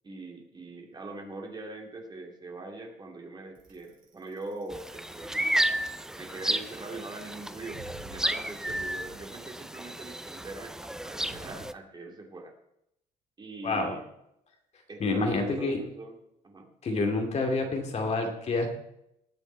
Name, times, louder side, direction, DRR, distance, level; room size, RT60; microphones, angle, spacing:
voice 1, 0.0-5.4 6.1-12.5 13.4-14.0 14.9-16.2 16.4-16.7, right 2 dB, 25° right, 2 dB, 2.5 m, -42 dB
Bicycle, 3.5-11.6, right 2 dB, 55° right, 5.1 m, -51 dB
sound 1, 4.7-11.7, right 1 dB, 5° right, 0.4 m, -32 dB
voice 2, 13.6-14.0 15.0-15.8 16.8-18.7, left 3 dB, 40° left, 3 dB, 2.3 m, -28 dB
19.0 x 7.2 x 4.6 m, 0.79 s
cardioid pair, 110°, 17 cm